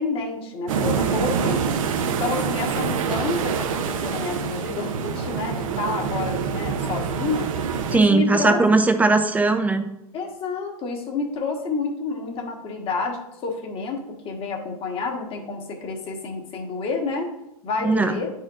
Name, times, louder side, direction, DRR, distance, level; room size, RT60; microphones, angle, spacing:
voice 1, 0.0-1.6 2.0-7.5 7.9-8.6 10.1-17.3 17.6-18.3, left 4 dB, 30° left, 1 dB, 1.4 m, -29 dB
sound 1, 0.7-8.0, right 6 dB, 60° right, 0.7 m, -26 dB
voice 2, 7.9-9.8 17.8-18.2, right 3 dB, 10° right, 6 dB, 0.6 m, -18 dB
9.3 x 4.4 x 2.5 m, 0.82 s
hypercardioid pair, 120°, 19 cm